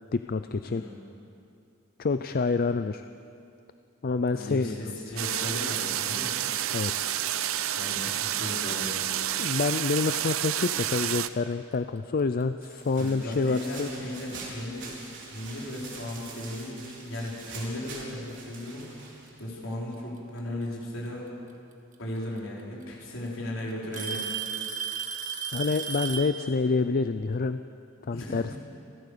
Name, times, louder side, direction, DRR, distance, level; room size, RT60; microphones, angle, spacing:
voice 1, 0.1-0.8 2.0-3.1 4.0-4.8 6.7-7.1 9.4-13.9 25.5-27.6 28.1-28.4, left 4 dB, 45° left, 10 dB, 0.5 m, -27 dB
voice 2, 4.3-6.3 7.8-8.9 12.9-19.0 19.4-21.3 22.0-24.3 28.1-28.6, left 1 dB, 70° left, -4 dB, 5.1 m, -36 dB
sound 1, 5.2-11.3, right 11 dB, 90° right, 0.7 m, -29 dB
Alarm / Tick-tock, 12.4-12.6 13.5-13.6 14.4-14.5 16.2-16.3 17.5-17.6 18.8-19.3 21.1-21.2 22.4-22.5 22.8-23.3 23.9-26.4, right 7 dB, 40° right, 1.7 m, -34 dB
sound 2, 12.6-19.6, right 3 dB, 60° right, 4.9 m, -44 dB
30.0 x 13.0 x 6.8 m, 2.6 s
head